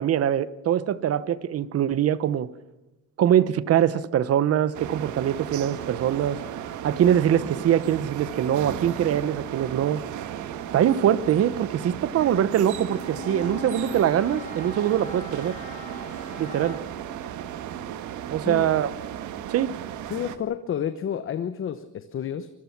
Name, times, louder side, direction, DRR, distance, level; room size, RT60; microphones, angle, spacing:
voice 1, 0.0-2.5 3.2-6.4 6.8-10.0 10.7-15.6 16.4-16.8 18.3-18.9 19.5-19.8, right 10 dB, 50° right, 17 dB, 1.0 m, -23 dB
sound 1, 4.7-20.4, right 10 dB, 70° right, 1.6 m, -35 dB
Bowed string instrument, 12.6-17.0, left 3 dB, 25° left, 4.9 m, -41 dB
voice 2, 18.4-18.8 20.1-22.5, left 9 dB, 40° left, 11 dB, 1.0 m, -30 dB
24.5 x 21.5 x 6.0 m, 0.97 s
cardioid pair, 135°, 31 cm